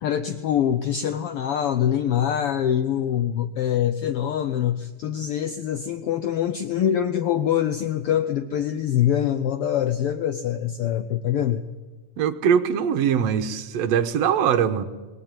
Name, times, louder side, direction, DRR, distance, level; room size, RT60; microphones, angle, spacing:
voice 1, 0.0-11.6, left 10 dB, 80° left, 1.3 m, -24 dB
voice 2, 12.2-14.8, right 8 dB, 65° right, 2.0 m, -22 dB
21.0 x 17.0 x 8.9 m
omnidirectional pair, 3.5 m